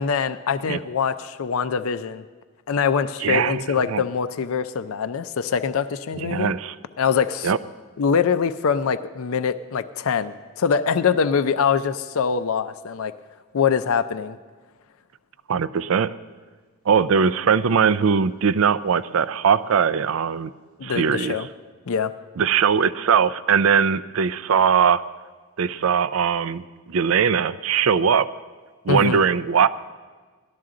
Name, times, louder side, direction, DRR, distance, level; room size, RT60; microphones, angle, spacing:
voice 1, 0.0-2.2 2.7-6.5 7.0-7.5 8.0-13.1 13.5-14.4 20.8-21.5 21.9-22.1 28.9-29.2, left 6 dB, 70° left, 12 dB, 0.5 m, -23 dB
voice 2, 3.2-4.0 6.2-6.7 7.4-7.6 15.5-16.1 16.9-20.5 20.8-21.4 22.4-25.0 25.6-28.3 28.8-29.7, right 6 dB, 65° right, 14 dB, 0.4 m, -20 dB
18.0 x 12.0 x 3.8 m, 1.4 s
head